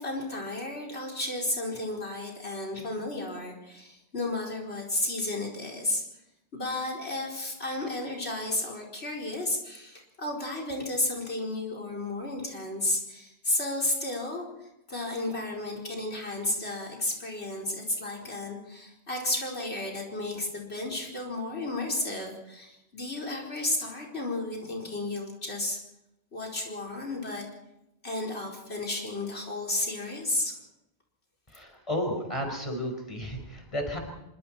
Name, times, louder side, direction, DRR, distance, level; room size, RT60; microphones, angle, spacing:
voice 1, 0.0-6.0 6.5-25.8 26.3-27.5 28.0-30.6, left 2 dB, 85° left, 1 dB, 5.1 m, -33 dB
voice 2, 31.5-34.0, equal, 30° left, 3 dB, 5.4 m, -33 dB
26.5 x 24.5 x 4.5 m, 0.86 s
omnidirectional pair, 1.1 m